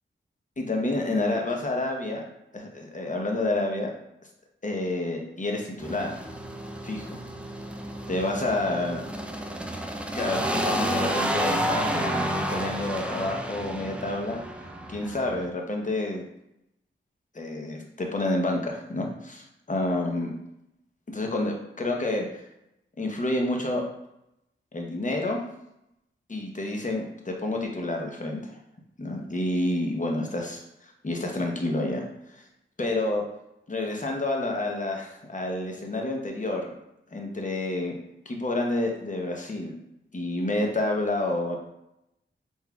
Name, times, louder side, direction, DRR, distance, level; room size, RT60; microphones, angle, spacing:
voice 1, 0.6-2.2 2.5-3.9 4.6-6.2 6.8-7.2 8.1-9.0 10.1-14.4 14.9-16.2 17.3-20.3 21.1-22.3 23.0-23.8 24.7-25.4 26.3-28.6 29.0-32.0 32.3-32.4 32.8-33.3 33.7-36.7 37.1-38.0 38.3-39.7 40.1-41.6, left 2 dB, 35° left, 1 dB, 0.9 m, -29 dB
sound 1, 5.8-15.5, right 1 dB, 5° right, 0.4 m, -31 dB
4.3 x 3.8 x 2.3 m, 0.83 s
cardioid pair, 55°, 21 cm